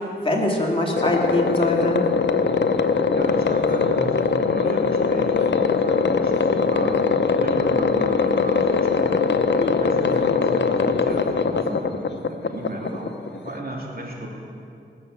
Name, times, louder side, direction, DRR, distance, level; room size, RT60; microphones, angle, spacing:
voice 1, 0.0-2.0 9.6-9.8, left 1 dB, 30° left, -1 dB, 2.9 m, -23 dB
sound 1, 1.0-13.6, left 5 dB, 70° left, 0.8 m, -21 dB
voice 2, 3.1-9.3 9.7-14.3, right 1 dB, 50° right, -2 dB, 3.3 m, -34 dB
19.0 x 6.7 x 8.4 m, 2.6 s
cardioid pair, 50°, 19 cm